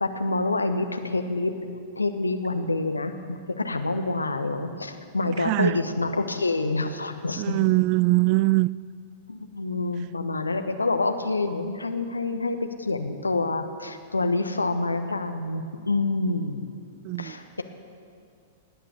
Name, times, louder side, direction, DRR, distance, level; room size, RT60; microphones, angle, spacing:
voice 1, 0.0-1.5 1.9-7.6 9.3-16.6 17.2-17.6, left 3 dB, 80° left, 7 dB, 1.1 m, -27 dB
voice 2, 5.4-5.8 7.4-8.7 17.0-17.3, right 22 dB, 40° right, 21 dB, 0.3 m, -22 dB
18.5 x 8.8 x 8.5 m, 2.2 s
figure-of-eight pair, 100°, 0 cm